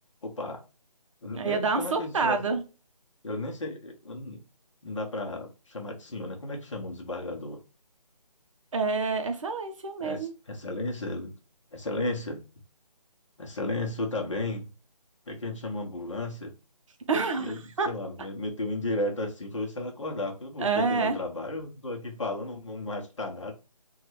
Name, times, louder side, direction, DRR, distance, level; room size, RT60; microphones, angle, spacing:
voice 1, 0.2-0.6 1.2-2.4 3.2-4.4 4.8-7.6 10.0-10.2 10.5-11.3 11.7-12.4 13.4-14.7 15.3-16.5 17.4-17.6 17.9-23.5, left 2 dB, 50° left, 0.9 m, -34 dB
voice 2, 1.3-2.6 8.7-10.3 17.1-17.9 20.6-21.2, right 4 dB, 50° right, 0.6 m, -27 dB
3.7 x 2.3 x 3.1 m
figure-of-eight pair, 155°, 21 cm